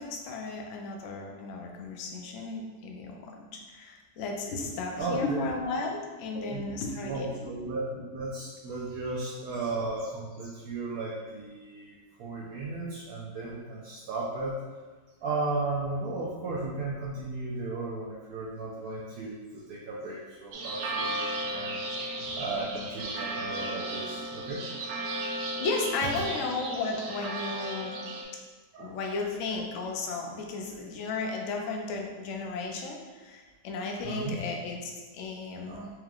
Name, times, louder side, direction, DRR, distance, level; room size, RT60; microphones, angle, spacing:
voice 1, 0.0-7.6 22.3-22.4 25.6-28.0 28.8-35.9, left 3 dB, 70° left, 1 dB, 0.7 m, -34 dB
voice 2, 5.0-5.5 6.3-6.6 7.0-14.6 15.2-21.8 22.4-24.6 24.9-25.0 28.7-29.1 34.0-34.4 35.7-35.9, right 2 dB, 70° right, -4 dB, 0.9 m, -35 dB
sound 1, 20.5-28.2, right 1 dB, 90° right, 1.3 m, -35 dB
4.6 x 3.1 x 2.4 m, 1.3 s
omnidirectional pair, 1.9 m